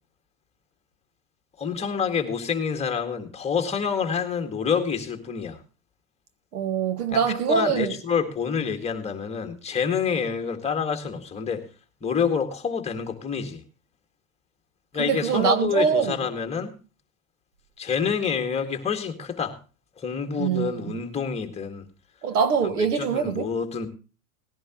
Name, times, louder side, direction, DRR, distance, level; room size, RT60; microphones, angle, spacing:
voice 1, 1.6-5.6 7.1-7.2 7.5-11.7 12.0-13.6 14.9-16.7 17.8-19.6 20.0-21.9 22.6-23.9, left 6 dB, 15° left, 1.9 m, -27 dB
voice 2, 6.5-7.9 15.0-16.2 20.4-21.0 22.2-23.5, right 7 dB, 75° right, 1.9 m, -24 dB
18.5 x 11.0 x 3.0 m
hypercardioid pair, 135°, 46 cm